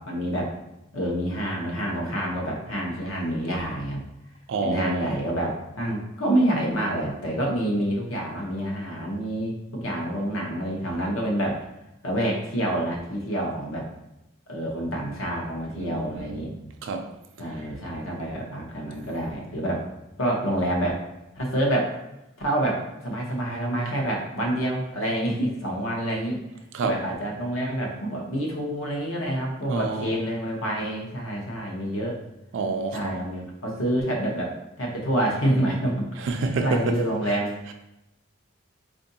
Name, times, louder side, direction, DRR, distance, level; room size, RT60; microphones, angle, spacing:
voice 1, 0.0-0.5 0.9-4.0 4.6-11.6 12.0-13.9 14.5-16.5 17.4-19.8 20.2-21.1 21.4-21.9 22.4-26.4 26.8-32.2 32.9-36.1 36.6-37.6, right 1 dB, 80° left, 0.9 m, -27 dB
voice 2, 4.5-5.3 15.7-16.6 16.8-17.7 26.7-27.1 29.7-30.3 32.5-33.2 36.2-37.4 37.7-37.8, right 3 dB, 65° right, 0.3 m, -29 dB
4.5 x 2.5 x 2.7 m
head